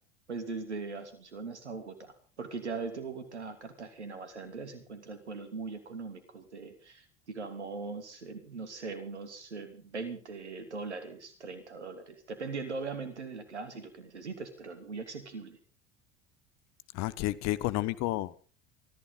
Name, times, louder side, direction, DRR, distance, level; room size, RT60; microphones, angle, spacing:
voice 1, 0.3-15.6, right 4 dB, 90° right, 3.1 m, -40 dB
voice 2, 16.9-18.4, left 16 dB, 55° left, 1.2 m, -31 dB
23.5 x 15.0 x 3.9 m
hypercardioid pair, 70°, 33 cm